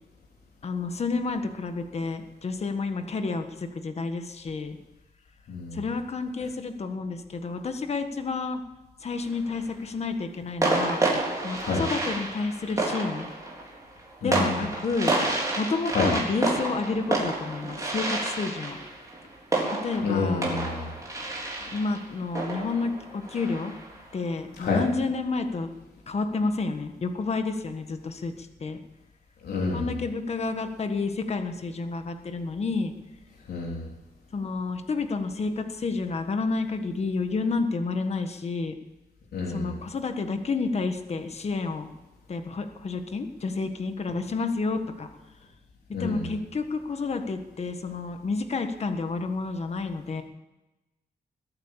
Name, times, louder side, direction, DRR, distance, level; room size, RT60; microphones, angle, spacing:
voice 1, 0.6-4.8 5.7-8.6 9.0-11.0 11.4-13.3 14.2-15.2 15.6-18.8 19.7-20.5 21.7-23.7 24.1-25.7 26.1-28.8 29.7-32.9 34.3-38.8 39.5-41.9 42.3-45.1 45.9-50.2, left 4 dB, 40° left, 7 dB, 1.5 m, -30 dB
voice 2, 5.5-5.8 11.6-11.8 14.2-14.5 15.9-16.1 20.0-20.9 24.6-24.8 29.4-29.9 33.5-33.9 39.3-39.8 45.9-46.3, left 4 dB, 80° left, -3 dB, 3.5 m, -28 dB
sound 1, 9.1-9.7 10.6-24.0, right 2 dB, 20° right, 4.0 m, -30 dB
21.0 x 8.9 x 7.4 m, 1.0 s
wide cardioid pair, 150°, 16 cm